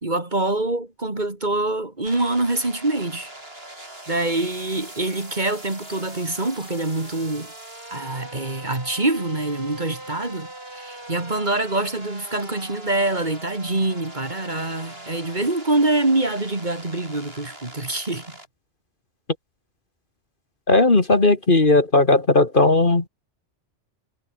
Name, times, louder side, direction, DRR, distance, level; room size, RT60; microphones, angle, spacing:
voice 1, 0.0-3.3 4.1-7.5 7.9-18.3, right 2 dB, 40° right, 2.9 m, -25 dB
sound 1, 2.1-18.5, right 1 dB, 55° right, 7.0 m, -41 dB
voice 2, 20.7-23.1, left 2 dB, 45° left, 2.4 m, -16 dB
omnidirectional pair, 1.3 m